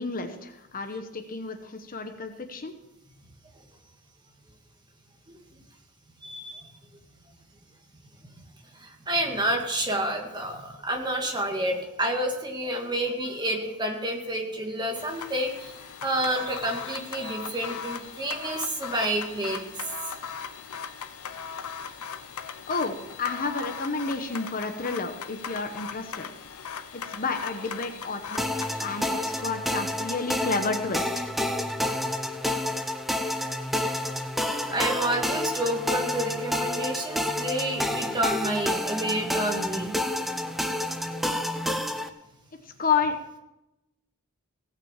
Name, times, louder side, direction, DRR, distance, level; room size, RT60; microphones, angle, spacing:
voice 1, 0.0-2.7 22.7-26.3 26.9-28.5 28.8-31.3 42.8-43.4, left 4 dB, 40° left, 6 dB, 1.0 m, -30 dB
voice 2, 6.2-6.7 8.8-19.6 34.7-39.9 40.4-40.6 41.2-41.4, right 1 dB, 20° right, 2 dB, 1.9 m, -29 dB
sound 1, 15.0-29.4, left 6 dB, 75° left, 0.7 m, -39 dB
sound 2, 28.4-42.1, left 1 dB, ahead, 0.7 m, -29 dB
17.0 x 6.0 x 7.4 m, 0.92 s
head